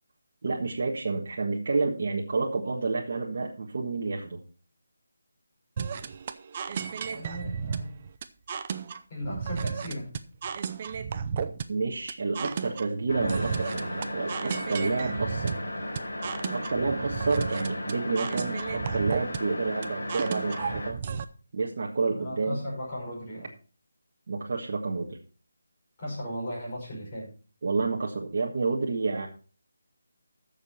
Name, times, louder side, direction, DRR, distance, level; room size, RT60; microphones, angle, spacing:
voice 1, 0.4-4.4 11.7-15.5 16.5-21.0 21.5-22.6 24.3-25.2 27.6-29.3, right 3 dB, 40° right, -2 dB, 1.4 m, -29 dB
sound 1, 5.8-21.2, right 6 dB, 25° right, 0.6 m, -34 dB
voice 2, 7.1-7.9 9.1-10.2 22.1-23.5 26.0-27.3, equal, 25° left, -5 dB, 5.7 m, -36 dB
sound 2, 13.1-20.9, left 1 dB, 80° left, 3.8 m, -35 dB
13.5 x 6.9 x 4.4 m, 0.38 s
figure-of-eight pair, 175°, 0 cm